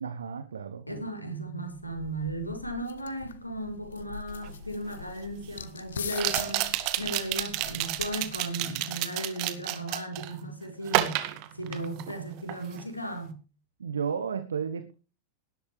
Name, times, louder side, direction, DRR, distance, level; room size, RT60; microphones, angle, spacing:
voice 1, 0.0-0.8 13.8-14.9, right 6 dB, 70° right, 1.1 m, -33 dB
voice 2, 0.9-13.4, right 1 dB, 85° left, 4.2 m, -36 dB
sound 1, 1.7-8.4, left 7 dB, 65° left, 1.3 m, -43 dB
sound 2, 4.4-4.5 6.1-10.3 10.9-12.2 12.5-12.8, right 15 dB, 45° right, 1.9 m, -30 dB
18.0 x 12.0 x 3.4 m
figure-of-eight pair, 90°, 0 cm